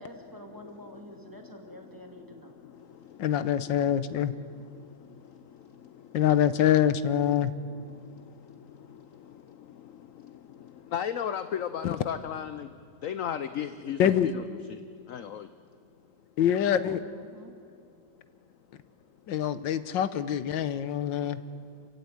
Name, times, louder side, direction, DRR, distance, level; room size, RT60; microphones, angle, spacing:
voice 1, 0.0-2.5 16.8-17.5, equal, 10° right, 3 dB, 2.4 m, -47 dB
voice 2, 3.2-4.3 6.1-7.5 11.8-12.0 14.0-14.3 16.4-17.0 19.3-21.4, left 10 dB, 90° left, 13 dB, 1.6 m, -25 dB
voice 3, 10.9-12.7 13.0-14.8 15.1-15.5, left 9 dB, 60° left, 12 dB, 0.9 m, -34 dB
28.0 x 16.0 x 9.5 m, 2.2 s
omnidirectional pair, 2.0 m